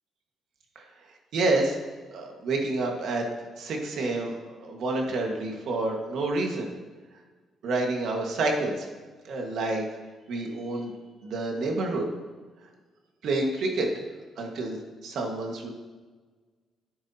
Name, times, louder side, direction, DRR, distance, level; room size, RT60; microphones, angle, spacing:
voice 1, 1.3-1.8 2.1-3.2 3.6-6.7 7.6-8.9 9.2-9.8 10.3-10.9 11.2-12.1 13.2-14.0 14.4-15.7, right 2 dB, 70° right, 1 dB, 1.6 m, -28 dB
11.5 x 9.5 x 2.9 m, 1.4 s
cardioid pair, 130°, 0 cm